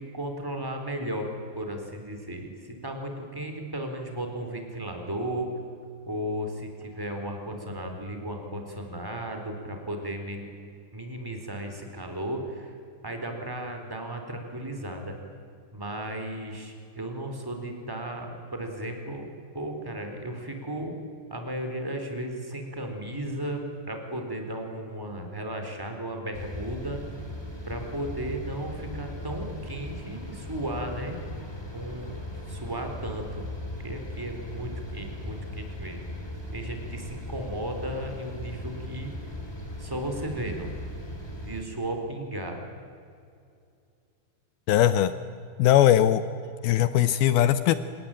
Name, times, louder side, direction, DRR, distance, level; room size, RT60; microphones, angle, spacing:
voice 1, 0.1-5.5 6.1-10.5 10.9-12.7 13.0-15.1 15.7-19.3 19.5-20.9 21.3-27.0 27.7-31.2 31.7-32.1 32.5-33.4 33.8-36.1 36.5-39.1 39.8-40.7 41.4-42.6, right 1 dB, 5° right, 4 dB, 3.2 m, -35 dB
sound 1, 26.3-41.6, left 1 dB, 15° left, 0.9 m, -38 dB
voice 2, 44.7-45.1 45.6-46.2 46.6-47.7, left 11 dB, 85° left, 13 dB, 2.2 m, -20 dB
26.5 x 22.0 x 9.0 m, 2.4 s
omnidirectional pair, 5.3 m